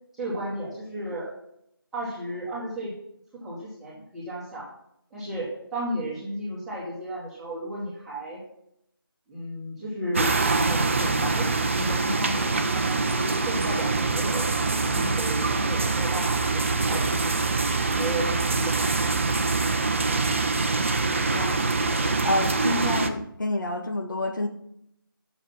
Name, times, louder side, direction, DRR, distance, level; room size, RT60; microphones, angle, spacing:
voice 1, 0.1-1.3 1.9-2.9 3.3-4.7 5.1-8.4 9.3-10.3 10.6-17.3 17.8-19.2, right 1 dB, ahead, -10 dB, 2.1 m, -34 dB
sound 1, 10.1-23.1, right 3 dB, 35° right, 0.8 m, -24 dB
voice 2, 21.2-24.5, left 1 dB, 55° left, 3 dB, 1.7 m, -29 dB
11.5 x 7.3 x 5.8 m, 0.76 s
figure-of-eight pair, 165°, 12 cm